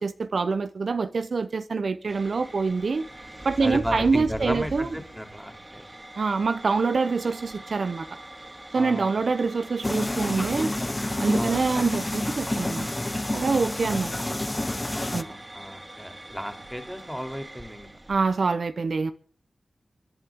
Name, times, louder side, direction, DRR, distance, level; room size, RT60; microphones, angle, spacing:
voice 1, 0.0-3.0 3.4-4.9 6.2-8.1 8.7-10.7 11.2-12.9 13.3-14.2 15.1-15.3 18.1-19.1, right 4 dB, 70° right, 0.8 m, -25 dB
sound 1, 2.1-18.4, right 1 dB, 20° right, 2.6 m, -43 dB
voice 2, 3.6-5.8 8.7-9.1 11.3-11.6 14.9-17.9, equal, ahead, 3.0 m, -34 dB
sound 2, 9.8-15.2, left 1 dB, 20° left, 1.0 m, -29 dB
29.0 x 11.0 x 3.7 m
cardioid pair, 60°, 0 cm